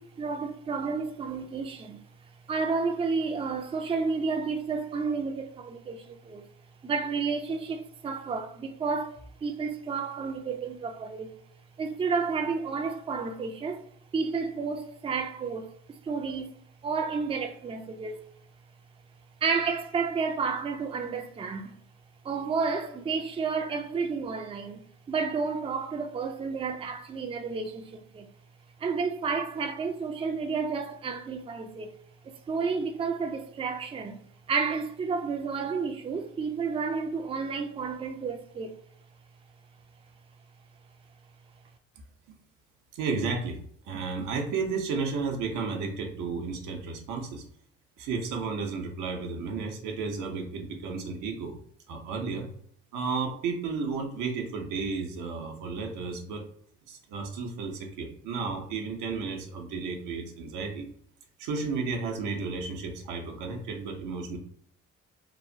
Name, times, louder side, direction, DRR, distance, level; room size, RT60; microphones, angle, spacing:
voice 1, 0.0-2.0 2.5-6.4 6.8-11.3 11.8-13.9 14.1-16.5 16.8-18.2 19.4-21.7 22.2-28.3 28.8-31.9 32.2-34.2 34.5-38.7, right 5 dB, 20° right, 0.4 m, -31 dB
voice 2, 42.9-43.6 43.8-47.4 48.0-51.5 51.9-52.5 52.9-56.5 56.9-60.9 61.4-64.4, right 4 dB, 80° right, 0.7 m, -33 dB
3.0 x 2.0 x 2.5 m
supercardioid pair, 60°, 31 cm